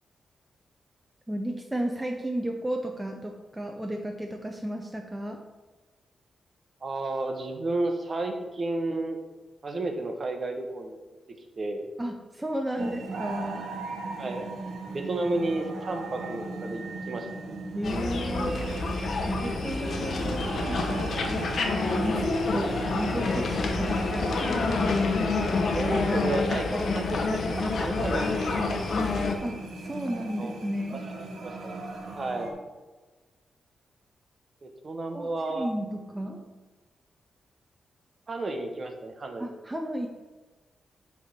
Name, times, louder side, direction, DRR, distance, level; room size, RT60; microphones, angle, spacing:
voice 1, 1.3-5.4 12.0-13.6 17.7-18.8 19.3-21.4 21.9-24.3 29.4-31.0 35.1-36.6 39.4-40.1, right 1 dB, 10° right, 2 dB, 0.5 m, -33 dB
voice 2, 6.8-9.2 9.6-11.0 11.6-11.9 12.8-13.0 14.2-14.5 14.9-17.4 25.7-28.8 30.4-30.6 31.4-31.8 32.2-32.5 34.6-35.7 38.3-39.5, right 2 dB, 35° right, 5 dB, 0.9 m, -32 dB
sound 1, 12.8-32.5, right 2 dB, 90° right, 1.1 m, -38 dB
sound 2, 17.8-29.4, left 3 dB, 60° left, 0.8 m, -28 dB
7.8 x 3.4 x 5.7 m, 1.3 s
wide cardioid pair, 150°, 0 cm